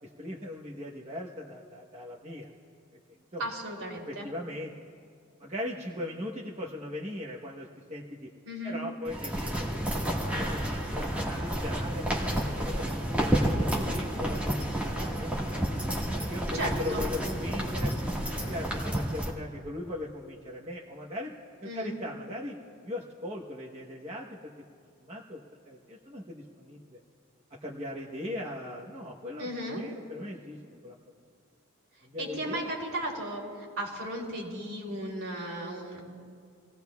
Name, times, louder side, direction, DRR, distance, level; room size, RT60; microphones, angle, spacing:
voice 1, 0.0-2.5 3.3-3.4 4.1-4.7 5.4-8.3 8.6-12.1 12.5-15.4 16.2-18.0 18.5-21.3 21.7-22.6 22.8-24.5 25.0-27.0 27.6-30.9 32.0-32.7, left 1 dB, 30° right, -4 dB, 1.0 m, -39 dB
voice 2, 3.4-4.3 8.4-8.8 16.5-17.0 21.6-22.0 29.4-29.8 32.2-36.0, right 1 dB, 70° right, -3 dB, 3.2 m, -35 dB
sound 1, 9.1-19.3, right 1 dB, 5° right, 1.6 m, -30 dB
26.5 x 17.0 x 2.3 m, 2.2 s
head